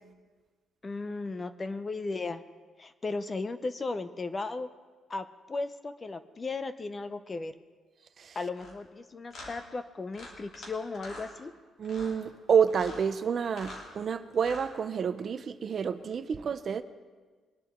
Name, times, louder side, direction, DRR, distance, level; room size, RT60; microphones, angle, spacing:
voice 1, 0.8-2.4 2.8-4.7 5.1-7.5 8.4-11.5, left 3 dB, 20° left, 11 dB, 0.5 m, -36 dB
sound 1, 8.5-8.7 9.3-9.5 10.1-10.7 10.9-11.3 11.8-12.2 12.7-13.0 13.4-13.9 14.3-14.7, left 2 dB, 50° left, 3.1 m, -45 dB
voice 2, 11.8-16.8, right 7 dB, 35° right, 11 dB, 0.5 m, -28 dB
22.5 x 11.5 x 3.6 m, 1.4 s
cardioid pair, 170°, 0 cm